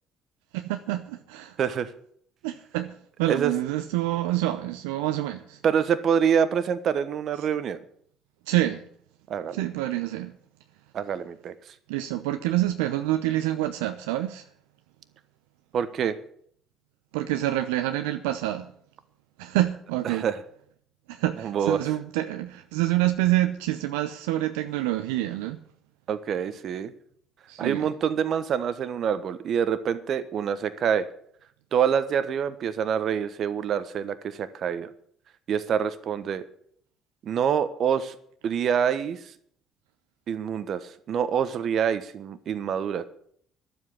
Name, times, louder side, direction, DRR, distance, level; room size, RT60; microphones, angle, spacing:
voice 1, 0.5-1.6 2.4-5.6 8.5-8.8 9.5-10.3 11.9-14.4 17.1-18.7 19.4-20.2 21.1-25.6 27.5-27.9, right 15 dB, 80° right, 0.6 m, -27 dB
voice 2, 1.6-1.9 3.3-3.5 5.6-7.8 9.3-9.6 10.9-11.5 15.7-16.1 20.0-20.4 21.4-21.8 26.1-26.9 27.6-31.1 31.7-34.9 35.5-36.4 37.2-38.1 38.4-39.2 40.3-43.0, right 8 dB, 55° right, 1.2 m, -26 dB
12.0 x 7.9 x 9.8 m
hypercardioid pair, 55°, 0 cm